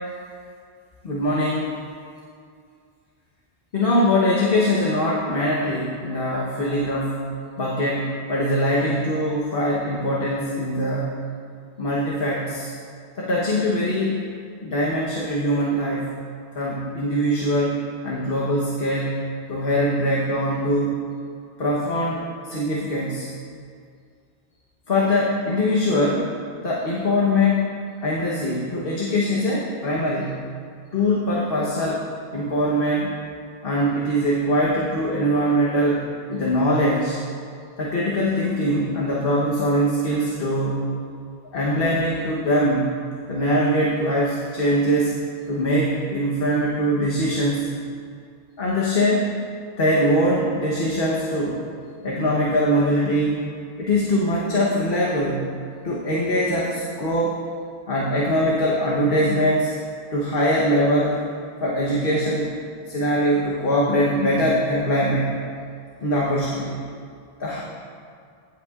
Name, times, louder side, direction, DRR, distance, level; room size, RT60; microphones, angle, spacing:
voice 1, 1.0-1.7 3.7-7.2 7.6-11.2 11.8-12.7 13.1-14.2 14.6-16.1 16.5-19.2 19.5-21.0 21.6-23.3 24.9-26.3 26.6-27.7 28.0-30.3 30.9-32.0 32.3-33.2 33.6-36.0 36.3-37.2 37.8-40.9 41.5-42.9 43.3-45.2 45.5-47.7 48.6-49.3 49.8-51.6 52.0-53.5 53.8-55.4 55.8-57.4 57.9-59.7 60.1-61.2 61.6-62.5 62.9-65.3 66.0-66.8 67.4-67.6, equal, 60° left, -5 dB, 1.2 m, -22 dB
15.5 x 8.1 x 2.4 m, 2.3 s
omnidirectional pair, 1.1 m